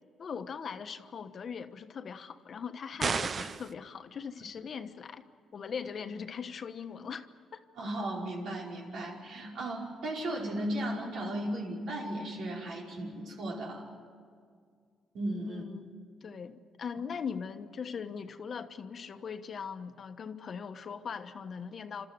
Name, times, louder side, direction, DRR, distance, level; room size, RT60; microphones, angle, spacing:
voice 1, 0.2-5.2 5.5-7.3 7.5-7.6 15.5-15.9 16.2-22.1, left 6 dB, 50° left, 8 dB, 1.2 m, -40 dB
sound 1, 3.0-3.7, right 5 dB, 45° right, 0.7 m, -31 dB
voice 2, 7.8-13.9 15.1-15.6, right 1 dB, 70° right, -2 dB, 5.3 m, -36 dB
29.0 x 13.5 x 9.5 m, 2.1 s
cardioid pair, 90°, 0 cm